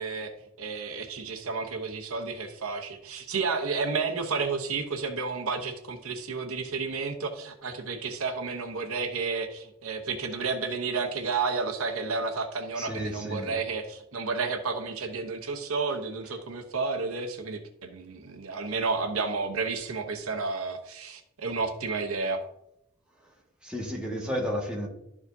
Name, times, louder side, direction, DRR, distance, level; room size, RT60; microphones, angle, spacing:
voice 1, 0.0-22.4, right 4 dB, 85° right, 6 dB, 0.9 m, -31 dB
voice 2, 12.8-13.5 23.2-23.3 23.6-24.9, equal, 5° right, -3 dB, 1.7 m, -32 dB
12.5 x 4.9 x 2.7 m, 0.81 s
head